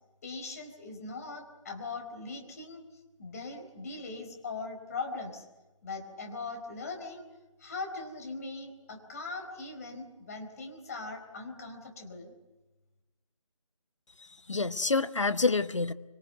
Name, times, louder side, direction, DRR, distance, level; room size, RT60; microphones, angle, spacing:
voice 1, 0.2-2.8 3.2-5.4 5.8-7.2 7.6-12.3, left 3 dB, 30° left, 3 dB, 4.1 m, -40 dB
voice 2, 14.2-15.9, left 3 dB, 65° left, 13 dB, 1.2 m, -28 dB
25.5 x 22.5 x 8.1 m, 1.1 s
figure-of-eight pair, 155°, 17 cm